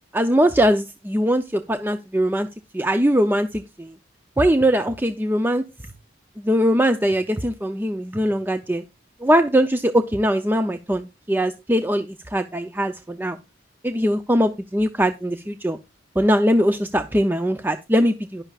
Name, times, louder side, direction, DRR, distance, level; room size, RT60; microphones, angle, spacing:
voice 1, 0.1-2.5 2.7-3.9 4.4-5.6 6.4-8.8 9.2-13.4 13.8-15.8 16.2-18.4, equal, 10° right, 8 dB, 0.6 m, -21 dB
11.0 x 11.0 x 2.4 m, 0.23 s
head